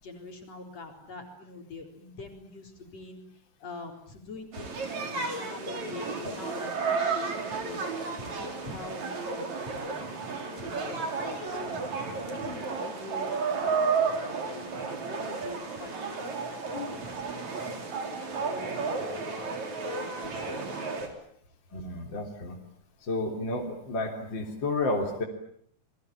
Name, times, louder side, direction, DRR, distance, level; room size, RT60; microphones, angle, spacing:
voice 1, 0.0-3.2 3.6-7.8 8.2-19.6 20.2-21.1, left 3 dB, 50° left, 3 dB, 5.2 m, -44 dB
sound 1, 4.5-21.1, right 4 dB, 60° right, 5.1 m, -32 dB
voice 2, 21.7-22.6 23.1-25.2, left 2 dB, 35° left, 2 dB, 3.9 m, -31 dB
28.5 x 22.0 x 8.8 m, 0.66 s
omnidirectional pair, 3.8 m